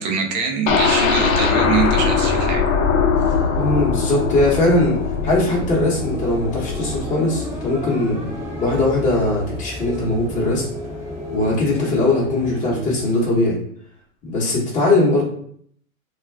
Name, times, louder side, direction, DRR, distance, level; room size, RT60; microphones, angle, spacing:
voice 1, 0.0-2.7, right 6 dB, 35° right, 3 dB, 0.5 m, -23 dB
sound 1, 0.7-8.5 8.9-9.0 9.3-9.4, left 5 dB, 70° left, 0.7 m, -21 dB
voice 2, 3.5-5.0 5.2-8.2 8.6-10.7 11.3-13.6 14.2-15.2, left 2 dB, 20° left, -4 dB, 1.0 m, -20 dB
sound 2, 3.9-13.3, equal, 5° right, 0.8 m, -32 dB
2.3 x 2.2 x 3.3 m, 0.62 s
hypercardioid pair, 125°, 42 cm